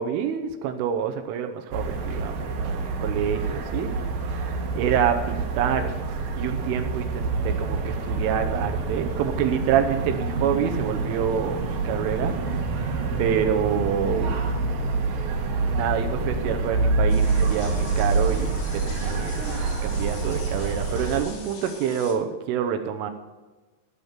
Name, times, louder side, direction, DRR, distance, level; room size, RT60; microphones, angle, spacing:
voice 1, 0.0-3.9 4.7-5.9 6.3-12.4 13.2-14.4 15.7-19.4 19.8-23.1, right 8 dB, 80° right, 6 dB, 3.2 m, -27 dB
sound 1, 1.7-21.2, right 3 dB, 65° right, 2.7 m, -27 dB
sound 2, 17.1-22.1, left 5 dB, 70° left, 4.7 m, -42 dB
15.5 x 6.9 x 7.2 m, 1.2 s
omnidirectional pair, 5.8 m